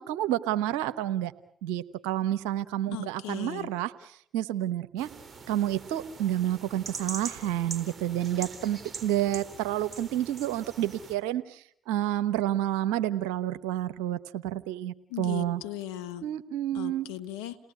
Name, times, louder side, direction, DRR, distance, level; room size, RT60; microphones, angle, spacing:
voice 1, 0.0-1.3 1.6-5.1 5.5-15.6 16.2-17.1, right 12 dB, 80° right, 12 dB, 1.0 m, -29 dB
voice 2, 2.9-3.7 15.1-16.3 16.7-17.6, left 13 dB, 85° left, 7 dB, 1.4 m, -38 dB
sound 1, 5.0-11.2, right 5 dB, 40° right, 3.6 m, -42 dB
29.5 x 19.0 x 8.4 m, 0.69 s
hypercardioid pair, 50°, 0 cm